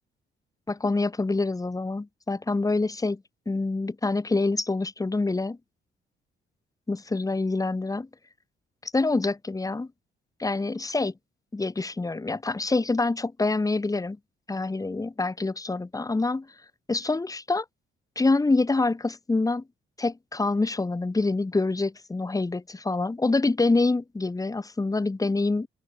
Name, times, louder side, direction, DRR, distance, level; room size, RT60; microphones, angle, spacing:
voice 1, 0.7-3.2 3.5-5.6 6.9-8.1 8.8-9.9 10.4-11.1 11.5-14.2 14.5-16.5 16.9-17.7 18.2-19.6 20.0-25.7, left 3 dB, 15° left, 1.9 m, -26 dB
open air
cardioid pair, 90°, 20 cm